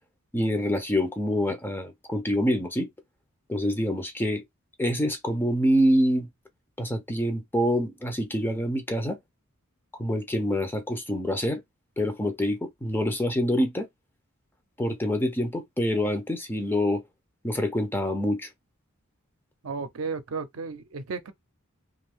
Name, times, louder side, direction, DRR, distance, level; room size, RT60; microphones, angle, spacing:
voice 1, 0.3-2.9 3.5-4.4 4.8-6.3 6.8-9.2 10.0-11.6 12.0-13.9 14.8-17.0 17.4-18.5, equal, 10° left, 0.5 m, -26 dB
voice 2, 19.6-21.3, right 4 dB, 75° right, 0.6 m, -33 dB
2.6 x 2.4 x 3.5 m
head